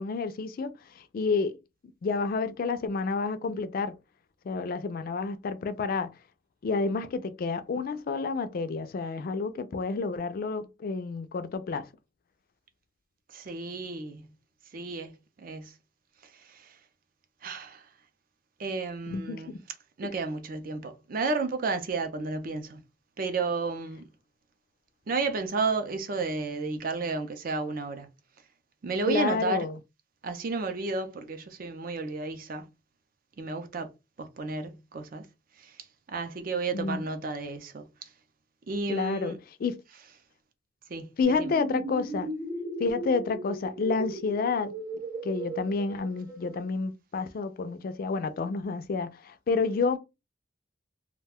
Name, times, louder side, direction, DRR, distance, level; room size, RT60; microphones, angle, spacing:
voice 1, 0.0-1.6 2.0-3.9 4.4-6.1 6.6-11.9 19.1-19.5 29.1-29.8 36.7-37.0 38.9-39.3 39.6-39.8 41.2-42.3 42.8-44.7 45.2-50.0, left 4 dB, 50° left, 0.3 m, -29 dB
voice 2, 13.3-14.3 14.7-15.7 16.3-16.8 17.4-17.9 18.6-19.6 20.0-22.8 23.2-24.1 25.1-28.1 28.8-29.7 30.2-32.7 33.4-33.9 34.2-35.3 35.6-35.7 36.1-37.9 38.7-39.4 40.9-41.5, right 3 dB, 50° right, 0.5 m, -32 dB
sound 1, 41.2-46.6, right 2 dB, 20° right, 0.9 m, -37 dB
2.4 x 2.1 x 3.4 m
head